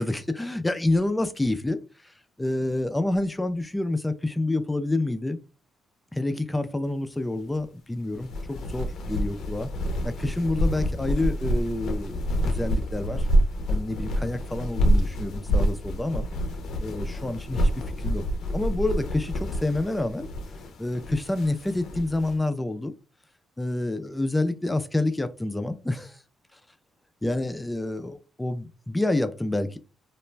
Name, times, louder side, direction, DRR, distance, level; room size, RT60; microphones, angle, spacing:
voice 1, 0.0-5.4 6.1-9.7 10.0-13.3 13.7-16.3 16.8-18.2 18.5-20.3 20.8-22.9 23.6-26.2 27.2-29.8, left 2 dB, 10° left, 0.3 m, -28 dB
sound 1, 8.1-22.3, equal, 70° left, 0.5 m, -27 dB
2.4 x 2.1 x 3.1 m
cardioid pair, 90°, 0 cm